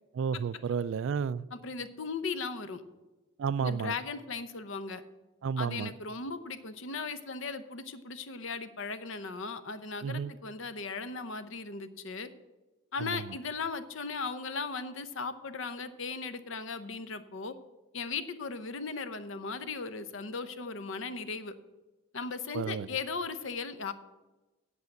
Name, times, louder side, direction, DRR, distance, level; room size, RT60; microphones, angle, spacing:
voice 1, 0.1-1.5 3.4-3.9 5.4-5.9 10.0-10.3 13.0-13.4 22.5-22.9, right 6 dB, 65° right, 19 dB, 0.3 m, -32 dB
voice 2, 1.5-2.8 3.6-5.0 5.6-12.3 12.9-17.5 17.9-21.5 22.1-23.9, left 4 dB, 65° left, 12 dB, 0.7 m, -37 dB
8.4 x 8.2 x 7.8 m, 1.1 s
head